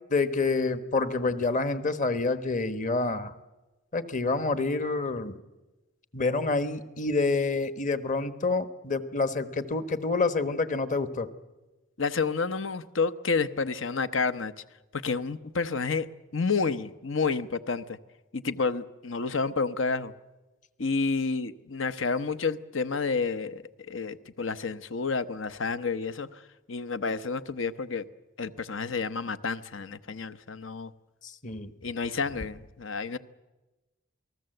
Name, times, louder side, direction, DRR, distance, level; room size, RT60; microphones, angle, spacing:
voice 1, 0.1-3.3 3.9-5.3 6.1-11.3 31.2-31.7, left 3 dB, 40° left, 11 dB, 1.2 m, -28 dB
voice 2, 12.0-14.5 14.9-16.1 16.3-18.0 18.3-20.1 20.8-26.3 26.7-28.0 28.4-30.9 31.8-33.2, left 4 dB, 80° left, 12 dB, 0.9 m, -30 dB
28.5 x 19.0 x 7.9 m, 1.1 s
head